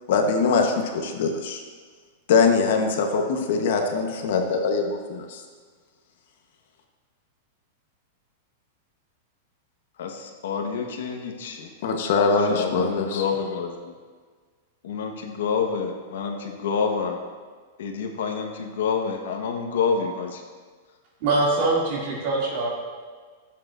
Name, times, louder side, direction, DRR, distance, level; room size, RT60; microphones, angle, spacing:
voice 1, 0.1-1.6 2.3-5.4 11.8-13.2, left 4 dB, 55° left, 3 dB, 1.0 m, -22 dB
voice 2, 10.0-11.7 12.5-13.8 14.8-17.2 17.8-20.4, left 6 dB, 80° left, 3 dB, 1.2 m, -28 dB
voice 3, 21.2-22.7, right 2 dB, 40° right, -4 dB, 2.4 m, -23 dB
15.0 x 7.5 x 2.6 m, 1.5 s
supercardioid pair, 180°, 0 cm